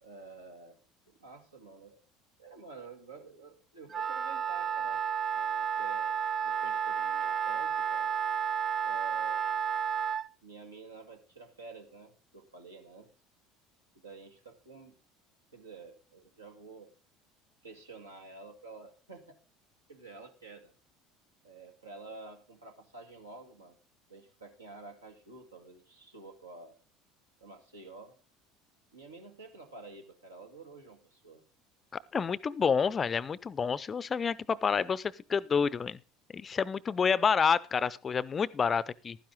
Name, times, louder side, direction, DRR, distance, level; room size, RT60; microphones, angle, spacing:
voice 1, 0.0-0.8 1.1-2.0 2.4-5.0 5.3-8.1 8.8-9.6 10.4-13.1 14.0-15.0 15.5-16.9 17.6-19.4 19.9-20.7 21.4-23.8 24.1-26.8 27.4-28.2 28.9-31.4, right 3 dB, 85° right, 2.0 m, -50 dB
Wind instrument woodwind instrument, 3.9-10.3, right 7 dB, 35° right, 0.4 m, -31 dB
voice 2, 32.1-36.0 36.3-39.2, left 6 dB, 30° left, 0.5 m, -29 dB
12.0 x 10.0 x 3.8 m
figure-of-eight pair, 65°, 0 cm